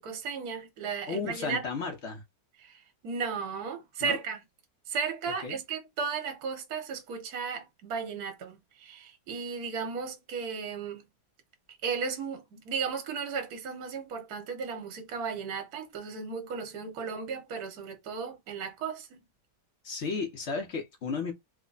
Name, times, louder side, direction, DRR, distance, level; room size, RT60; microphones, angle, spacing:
voice 1, 0.0-1.7 2.6-4.4 4.9-11.0 11.7-19.2, right 5 dB, 60° right, 1.4 m, -35 dB
voice 2, 1.1-2.2 4.0-4.2 5.4-5.6 19.8-21.3, left 4 dB, 50° left, 1.0 m, -33 dB
3.3 x 2.1 x 3.9 m
omnidirectional pair, 2.0 m